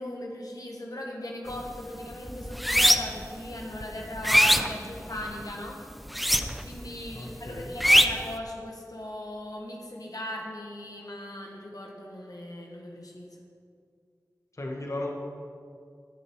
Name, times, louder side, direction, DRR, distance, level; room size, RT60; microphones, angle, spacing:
voice 1, 0.0-5.8 6.6-13.3, left 1 dB, 70° left, -1 dB, 1.6 m, -38 dB
sound 1, 1.5-1.8 2.1-3.3 3.7-5.4 6.1-6.8 7.1-8.3, equal, ahead, 0.6 m, -22 dB
voice 2, 7.1-7.7 14.5-15.1, left 1 dB, 50° left, -1 dB, 1.6 m, -36 dB
19.5 x 6.9 x 4.7 m, 2.3 s
wide cardioid pair, 45°, 7 cm